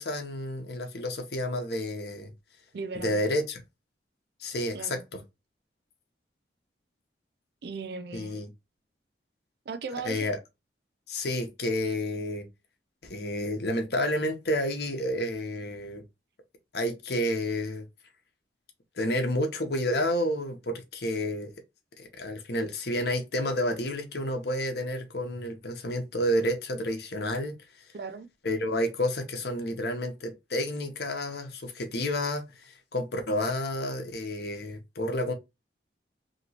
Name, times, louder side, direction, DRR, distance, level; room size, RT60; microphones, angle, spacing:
voice 1, 0.0-2.3 2.9-3.6 4.4-5.2 8.1-8.5 10.0-10.4 11.1-12.5 13.0-16.0 16.7-17.8 18.9-21.5 22.0-27.9 28.4-35.3, left 1 dB, 60° left, 0.8 m, -30 dB
voice 2, 2.7-3.2 4.7-5.0 7.6-8.4 9.7-10.3 27.9-28.3, right 4 dB, 60° right, 0.4 m, -37 dB
3.0 x 2.9 x 2.7 m
head